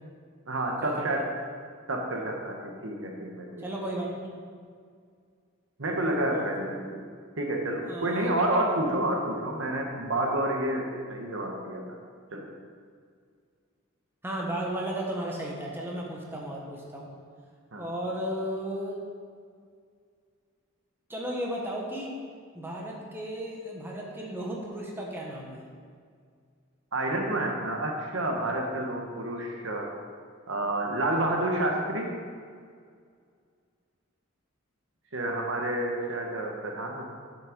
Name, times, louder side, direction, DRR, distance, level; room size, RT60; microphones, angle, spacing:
voice 1, 0.5-1.2 1.9-3.6 5.8-7.0 7.4-11.8 12.3-12.5 17.7-17.8 26.9-29.9 30.5-32.1 35.1-37.1, right 1 dB, 65° right, 1 dB, 1.3 m, -29 dB
voice 2, 3.6-4.4 6.3-6.4 7.8-8.3 14.2-17.1 17.8-19.0 21.1-22.1 22.5-25.6, right 1 dB, 10° right, -2 dB, 1.3 m, -34 dB
8.8 x 7.6 x 5.1 m, 2.1 s
head